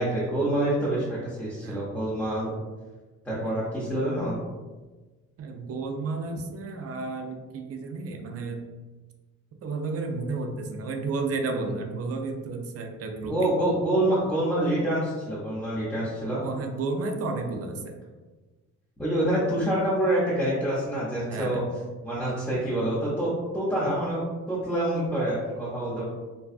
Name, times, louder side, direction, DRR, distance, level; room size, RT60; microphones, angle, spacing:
voice 1, 0.0-2.5 3.2-4.4 11.7-11.8 13.3-16.4 19.0-21.6 22.0-23.3 23.5-24.2 24.5-26.0, right 1 dB, 5° left, -9 dB, 0.7 m, -26 dB
voice 2, 3.3-3.7 5.4-8.6 9.6-13.5 16.4-18.0 21.3-21.7, right 3 dB, 50° right, 4 dB, 0.5 m, -32 dB
2.6 x 2.3 x 2.3 m, 1.3 s
cardioid pair, 90°, 30 cm